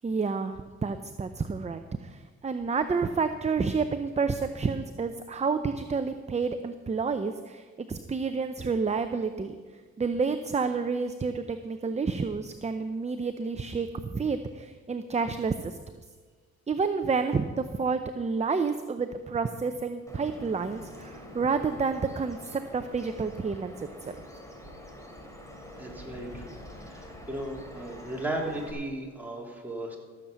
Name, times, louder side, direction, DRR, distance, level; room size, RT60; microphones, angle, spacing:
voice 1, 0.0-9.6 10.0-15.8 16.7-24.2, right 5 dB, 20° right, 9 dB, 0.6 m, -29 dB
Bird vocalization bird call bird song, 20.1-28.7, left 1 dB, 10° left, 3.0 m, -46 dB
voice 2, 25.8-30.0, right 1 dB, 5° right, -2 dB, 3.3 m, -36 dB
14.5 x 7.3 x 6.9 m, 1.5 s
cardioid pair, 90°, 30 cm